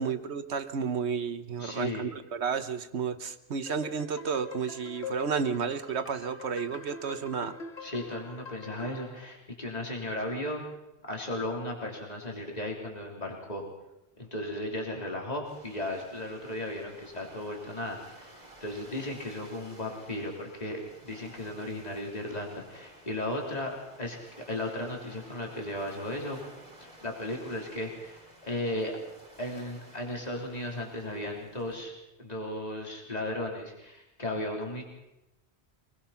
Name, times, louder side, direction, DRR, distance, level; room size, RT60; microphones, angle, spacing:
voice 1, 0.0-7.6, right 6 dB, 75° right, 10 dB, 1.3 m, -32 dB
voice 2, 1.6-2.1 7.8-10.6 11.0-13.6 14.2-18.3 18.6-26.4 26.8-29.0 29.4-31.9 32.2-34.8, left 1 dB, 35° left, 0 dB, 3.7 m, -35 dB
sound 1, 3.7-9.1, left 5 dB, 75° left, 2.0 m, -44 dB
sound 2, 15.4-31.9, right 1 dB, 40° right, 3.5 m, -53 dB
25.5 x 20.0 x 5.8 m, 0.93 s
omnidirectional pair, 1.1 m